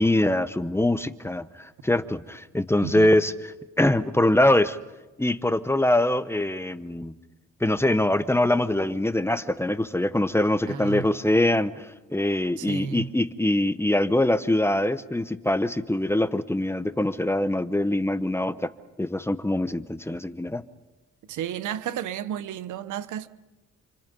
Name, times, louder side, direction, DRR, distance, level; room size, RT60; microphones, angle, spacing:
voice 1, 0.0-3.3 3.8-4.8 5.2-7.1 7.6-18.7 19.0-20.6, left 1 dB, 10° left, 1.0 m, -23 dB
voice 2, 10.7-11.1 12.6-13.1 21.3-23.3, right 9 dB, 80° right, 1.2 m, -32 dB
29.0 x 25.0 x 5.4 m
cardioid pair, 90°, 30 cm